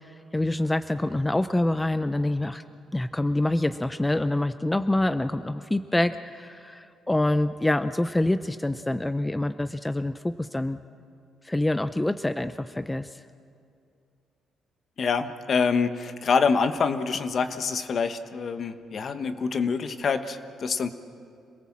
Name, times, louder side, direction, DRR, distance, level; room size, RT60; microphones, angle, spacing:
voice 1, 0.0-2.6 2.9-10.8 11.4-13.2, left 1 dB, 10° left, 11 dB, 0.6 m, -26 dB
voice 2, 15.0-20.9, left 5 dB, 50° left, 9 dB, 1.2 m, -26 dB
27.0 x 18.0 x 7.5 m, 2.4 s
cardioid pair, 90°, 0 cm